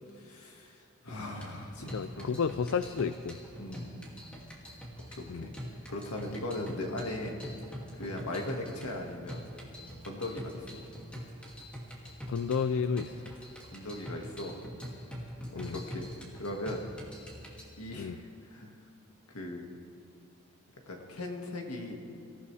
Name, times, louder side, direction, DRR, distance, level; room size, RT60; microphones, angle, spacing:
voice 1, 0.2-0.8 1.0-2.3 3.6-4.1 5.0-5.5 5.9-7.4 8.0-9.5 10.1-10.8 13.7-14.6 15.5-16.1 16.4-16.8 17.8-18.2 18.5-18.7 19.3-19.8 20.9-22.0, left 1 dB, 80° left, 1 dB, 2.0 m, -38 dB
sound 1, 1.4-17.6, equal, 5° left, 2.5 m, -44 dB
voice 2, 1.9-3.4 5.3-5.5 12.3-13.3 15.5-15.8 18.0-18.2, left 6 dB, 65° left, 12 dB, 0.4 m, -31 dB
25.0 x 15.5 x 3.4 m, 2.6 s
head